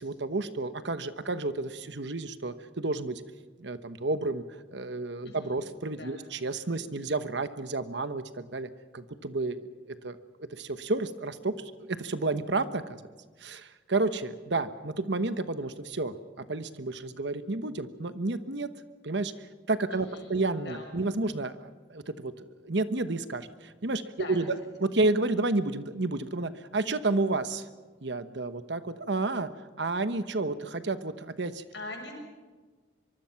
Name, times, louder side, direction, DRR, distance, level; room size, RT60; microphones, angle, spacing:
voice 1, 0.0-3.2 3.6-4.4 4.7-9.6 9.9-13.0 13.4-16.1 16.5-18.7 19.0-19.3 19.7-24.6 24.8-27.7 28.0-29.5 29.8-31.6, right 2 dB, 70° right, 11 dB, 1.1 m, -31 dB
voice 2, 5.2-5.6 5.9-6.2 19.9-20.9 24.1-24.4 31.7-32.1, left 2 dB, 65° left, 2 dB, 6.7 m, -43 dB
24.5 x 23.5 x 5.9 m, 1.4 s
head